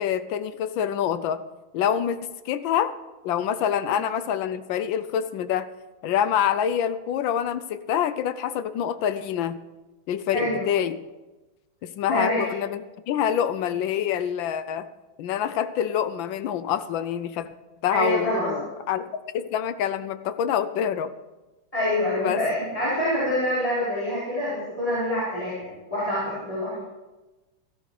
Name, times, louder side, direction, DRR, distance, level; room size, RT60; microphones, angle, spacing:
voice 1, 0.0-1.4 1.7-2.2 2.4-2.9 3.2-5.7 6.0-9.6 10.1-11.0 11.8-12.8 13.1-14.9 15.2-17.5 17.8-19.1 19.3-21.1 22.2-22.4, left 9 dB, 75° left, 12 dB, 1.2 m, -26 dB
voice 2, 10.3-10.6 12.1-12.4 17.9-18.5 21.7-26.8, left 1 dB, 15° left, -11 dB, 4.6 m, -26 dB
17.0 x 13.0 x 3.2 m, 1.1 s
omnidirectional pair, 2.3 m